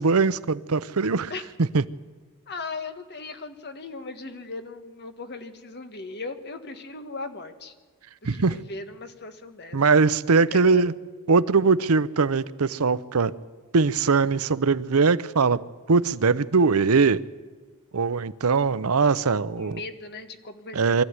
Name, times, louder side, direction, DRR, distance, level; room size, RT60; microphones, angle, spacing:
voice 1, 0.0-1.3 1.7-1.8 8.2-8.6 9.7-10.9 11.3-13.3 13.7-15.6 15.9-17.2 17.9-19.8 20.7-21.0, right 4 dB, 85° right, 0.7 m, -21 dB
voice 2, 2.5-7.7 8.3-9.8 10.3-10.8 19.5-21.0, left 3 dB, 50° left, 1.6 m, -38 dB
23.0 x 14.5 x 9.6 m
head